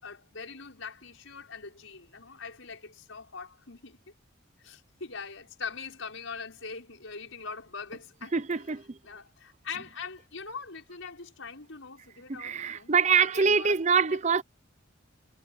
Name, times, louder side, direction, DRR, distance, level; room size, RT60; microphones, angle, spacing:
voice 1, 0.0-4.0 4.6-8.6 9.0-14.2, left 5 dB, 85° left, 5.6 m, -42 dB
voice 2, 8.3-9.0 12.3-14.4, right 6 dB, 35° right, 0.6 m, -25 dB
head